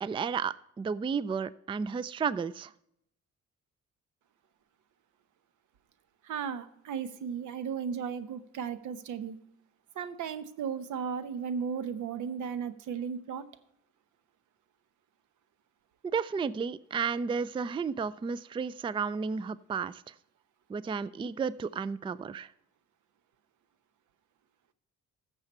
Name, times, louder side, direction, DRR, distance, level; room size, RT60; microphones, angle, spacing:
voice 1, 0.0-2.7 16.0-20.1 20.7-22.5, right 5 dB, 15° right, 18 dB, 0.3 m, -32 dB
voice 2, 6.2-9.4 10.0-13.5, right 7 dB, 80° right, 13 dB, 1.0 m, -35 dB
15.0 x 6.8 x 4.3 m, 0.77 s
cardioid pair, 90°, 30 cm